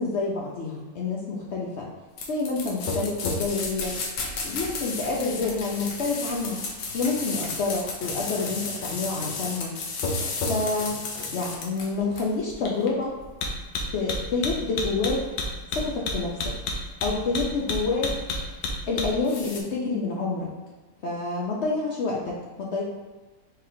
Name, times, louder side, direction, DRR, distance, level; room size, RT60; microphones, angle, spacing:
voice 1, 0.0-1.9 2.3-4.0 4.4-6.6 6.9-9.8 10.5-11.0 11.3-13.2 13.9-15.3 15.7-16.5 17.0-18.1 18.9-20.5 21.0-22.8, left 3 dB, 70° left, -3 dB, 0.6 m, -28 dB
sound 1, 2.2-19.6, left 3 dB, 90° left, 1.3 m, -31 dB
4.3 x 3.6 x 2.6 m, 1.3 s
omnidirectional pair, 1.8 m